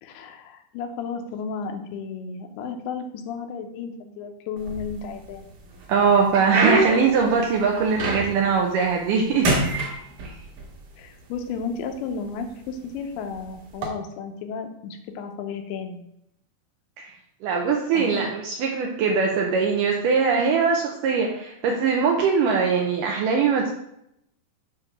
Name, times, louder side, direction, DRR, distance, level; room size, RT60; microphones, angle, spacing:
voice 1, 0.0-5.4 11.0-16.1 17.9-18.2, left 5 dB, 90° left, 5 dB, 2.8 m, -33 dB
sound 1, 4.6-5.3 5.8-8.5 8.9-9.2 9.4-10.7 11.5-11.6 12.3-12.5 13.7-13.9, right 3 dB, 60° right, 2.7 m, -25 dB
voice 2, 5.9-9.5 10.2-10.3 17.0-17.1 17.4-23.7, right 5 dB, 85° right, 1 dB, 1.9 m, -21 dB
7.8 x 3.0 x 5.9 m, 0.78 s
omnidirectional pair, 4.5 m